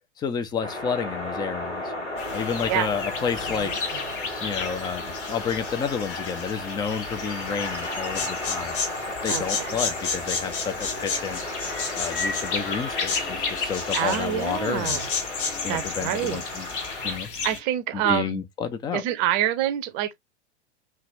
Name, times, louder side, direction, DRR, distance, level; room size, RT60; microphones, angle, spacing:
voice 1, 0.2-1.8 2.3-3.7 4.4-8.8 9.2-11.4 11.9-15.0 15.6-16.7 17.0-17.3 17.9-19.0, left 6 dB, 10° left, 0.5 m, -30 dB
sound 1, 0.6-17.2, left 1 dB, 75° left, 2.5 m, -34 dB
sound 2, 2.2-17.6, left 5 dB, 50° left, 1.3 m, -32 dB
voice 2, 3.6-4.1 9.3-9.8 13.9-15.1 15.7-16.4 17.4-18.4 18.9-20.2, right 12 dB, 30° right, 0.7 m, -27 dB
5.7 x 3.2 x 2.6 m
figure-of-eight pair, 95°, 36 cm